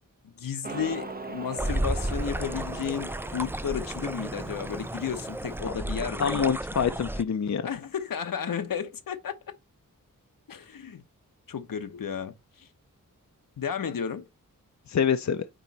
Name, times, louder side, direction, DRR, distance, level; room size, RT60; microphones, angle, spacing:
voice 1, 0.2-6.5 7.6-9.4 10.5-11.0 11.5-12.7 13.6-14.3, left 7 dB, 75° left, 0.9 m, -33 dB
Motorcycle, 0.6-5.6, right 4 dB, 25° right, 0.8 m, -41 dB
sound 1, 1.6-7.2, right 1 dB, 5° right, 0.4 m, -33 dB
voice 2, 6.2-7.7 14.9-15.4, left 7 dB, 55° left, 0.6 m, -26 dB
8.9 x 3.1 x 4.1 m
wide cardioid pair, 80°, 34 cm